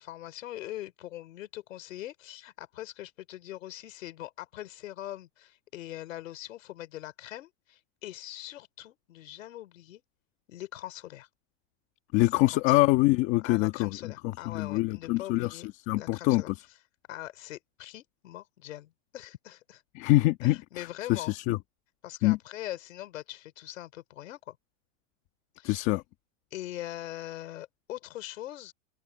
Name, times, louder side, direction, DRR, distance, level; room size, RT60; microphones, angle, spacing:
voice 1, 0.0-10.0 10.5-11.3 12.3-12.8 13.4-15.7 16.0-16.5 17.1-19.8 20.4-21.4 22.0-24.6 25.6-25.9 26.5-28.7, left 14 dB, 80° left, 4.2 m, -42 dB
voice 2, 12.1-16.5 19.9-21.6 22.2-22.4 25.6-26.0, left 19 dB, 35° left, 1.6 m, -25 dB
supercardioid pair, 170°, 39 cm